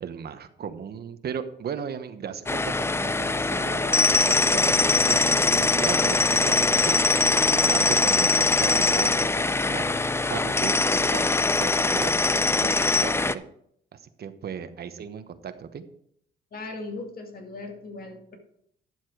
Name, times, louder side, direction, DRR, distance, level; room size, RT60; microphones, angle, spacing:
voice 1, 0.0-9.9 10.3-12.1 12.6-13.4 13.9-15.8, right 7 dB, 55° right, 10 dB, 1.1 m, -36 dB
sound 1, 2.5-13.3, left 3 dB, 10° left, 0.4 m, -22 dB
voice 2, 16.5-18.4, left 3 dB, 50° left, 4 dB, 2.2 m, -38 dB
11.0 x 7.4 x 4.7 m, 0.69 s
cardioid pair, 90°, 20 cm